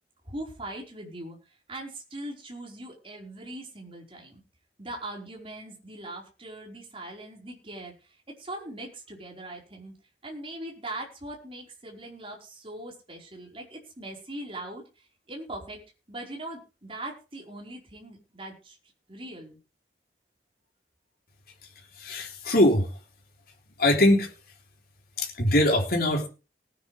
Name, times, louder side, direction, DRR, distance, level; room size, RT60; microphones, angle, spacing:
voice 1, 0.2-1.4 1.7-4.4 4.8-9.9 10.2-15.8 16.1-18.8 19.1-19.6, right 1 dB, 30° right, -1 dB, 4.9 m, -40 dB
voice 2, 22.0-22.9 23.8-24.3 25.2-26.3, left 1 dB, 55° left, 1 dB, 3.7 m, -22 dB
19.0 x 10.0 x 3.5 m, 0.32 s
head